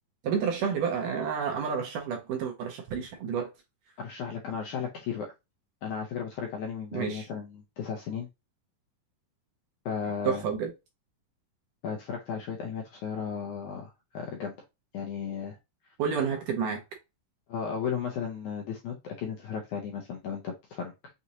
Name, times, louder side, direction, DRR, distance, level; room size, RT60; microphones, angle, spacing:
voice 1, 0.2-3.5 6.9-7.3 10.2-10.7 16.0-16.8, right 6 dB, 75° right, 2.1 m, -30 dB
voice 2, 4.0-5.3 5.8-8.3 9.9-10.4 11.8-14.5 14.9-15.6 15.8-15.9 17.5-20.9, left 7 dB, 75° left, 1.8 m, -35 dB
6.2 x 2.6 x 2.8 m
omnidirectional pair, 4.3 m